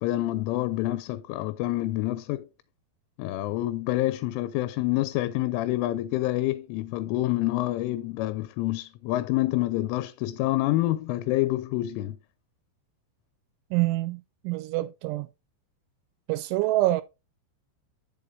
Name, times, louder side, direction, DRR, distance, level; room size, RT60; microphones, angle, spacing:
voice 1, 0.0-2.5 3.2-12.2, left 16 dB, 85° left, 3.1 m, -27 dB
voice 2, 13.7-15.3 16.3-17.0, right 17 dB, 85° right, 2.8 m, -26 dB
8.3 x 7.0 x 2.7 m
omnidirectional pair, 5.6 m